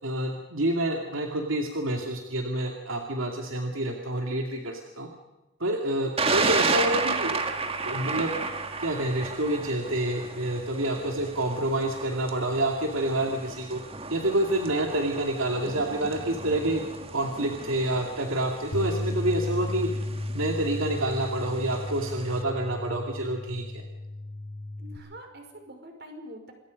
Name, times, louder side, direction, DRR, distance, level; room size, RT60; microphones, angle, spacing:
voice 1, 0.0-5.1 5.6-7.4 7.8-8.4 8.8-13.8 14.1-16.8 17.1-19.9 20.3-23.9, right 1 dB, 75° right, 2 dB, 2.5 m, -28 dB
Thunder, 6.2-22.4, right 4 dB, 30° right, 1.9 m, -33 dB
Bass guitar, 18.7-25.0, left 1 dB, 45° left, 3.0 m, -34 dB
voice 2, 24.8-26.5, equal, 50° right, 4 dB, 5.4 m, -45 dB
27.5 x 22.0 x 5.3 m, 1.1 s
head